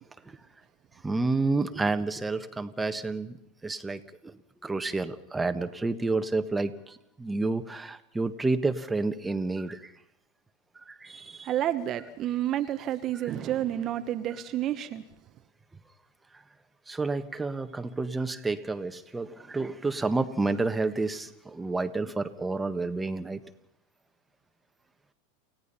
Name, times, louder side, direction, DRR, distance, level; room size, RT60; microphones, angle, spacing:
voice 1, 1.0-9.9 10.8-11.5 16.9-23.4, right 3 dB, 10° right, 8 dB, 1.6 m, -30 dB
voice 2, 11.4-15.0, right 12 dB, 40° right, 9 dB, 1.2 m, -30 dB
29.0 x 17.0 x 5.7 m, 0.80 s
hypercardioid pair, 90°, 0 cm